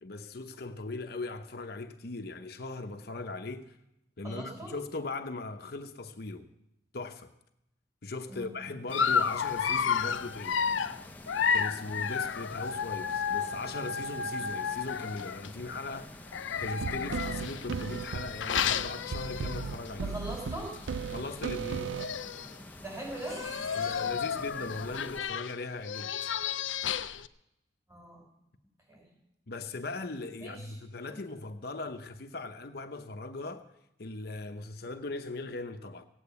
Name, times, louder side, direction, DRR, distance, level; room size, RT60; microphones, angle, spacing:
voice 1, 0.0-3.8 4.2-6.5 6.9-7.3 8.0-10.6 11.5-16.3 16.6-20.1 21.1-22.1 23.7-26.1 29.5-33.7 34.0-36.1, left 3 dB, 55° left, 0.8 m, -39 dB
voice 2, 4.2-4.7 8.3-8.6 20.0-20.7 22.7-24.0 27.9-28.2 28.9-29.1 30.4-30.8 31.1-31.2, right 1 dB, 15° right, 6.5 m, -41 dB
Dog, 8.9-15.5 16.3-19.9 20.3-20.5 20.7-20.8 21.7-21.8 22.0-22.5 23.2-27.3, left 7 dB, 90° left, 0.6 m, -32 dB
sound 1, 8.9-25.2, left 1 dB, 10° left, 0.7 m, -49 dB
sound 2, 16.6-22.2, right 5 dB, 80° right, 0.5 m, -36 dB
17.0 x 8.7 x 8.3 m
head